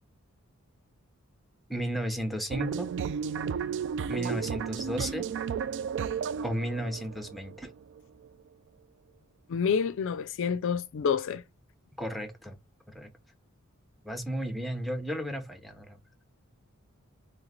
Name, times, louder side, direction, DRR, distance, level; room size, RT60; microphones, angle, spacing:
voice 1, 1.7-2.9 4.1-5.3 6.4-7.7 12.0-12.6 12.9-13.1 14.0-16.0, equal, ahead, 0.6 m, -34 dB
sound 1, 2.5-8.3, right 7 dB, 55° right, 0.3 m, -33 dB
voice 2, 9.5-11.4, left 6 dB, 60° left, 0.4 m, -28 dB
3.2 x 3.1 x 3.6 m
head